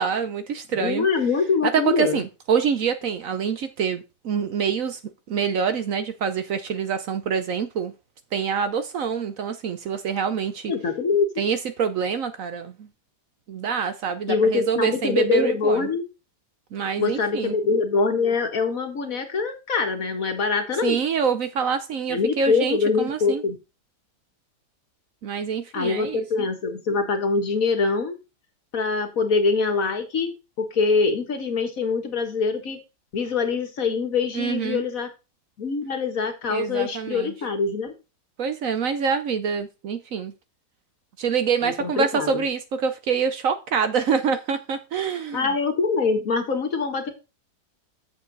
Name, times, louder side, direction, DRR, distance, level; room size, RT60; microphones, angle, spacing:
voice 1, 0.0-1.1 1.6-5.0 5.3-7.9 8.3-10.7 11.4-12.9 13.5-15.9 16.7-17.5 20.8-23.4 25.2-26.5 34.3-34.8 36.5-37.3 38.4-40.3 41.2-45.5, right 6 dB, 60° right, 1.0 m, -26 dB
voice 2, 0.7-2.2 10.7-11.3 14.3-16.1 17.0-21.0 22.1-23.6 25.7-28.2 28.7-32.8 33.1-35.1 35.6-37.9 41.6-42.4 45.3-47.1, left 4 dB, 55° left, 1.8 m, -24 dB
7.9 x 7.1 x 4.0 m
omnidirectional pair, 1.8 m